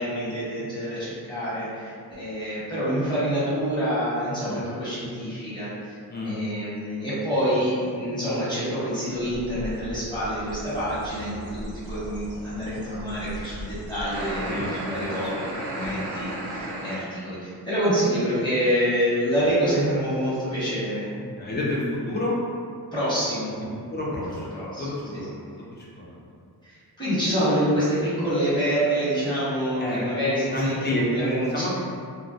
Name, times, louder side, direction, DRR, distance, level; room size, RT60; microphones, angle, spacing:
voice 1, 0.0-6.0 6.2-21.1 22.9-23.6 24.5-25.3 26.6-31.8, equal, 10° left, -12 dB, 1.0 m, -27 dB
Bird, 9.1-14.7, equal, 55° right, 0.5 m, -39 dB
sound 1, 14.1-17.0, right 1 dB, 85° right, 0.7 m, -32 dB
voice 2, 21.4-22.4 23.9-26.2 29.8-30.0 30.5-31.8, left 1 dB, 25° left, -5 dB, 0.5 m, -29 dB
2.2 x 2.1 x 2.6 m, 2.2 s
wide cardioid pair, 120°, 39 cm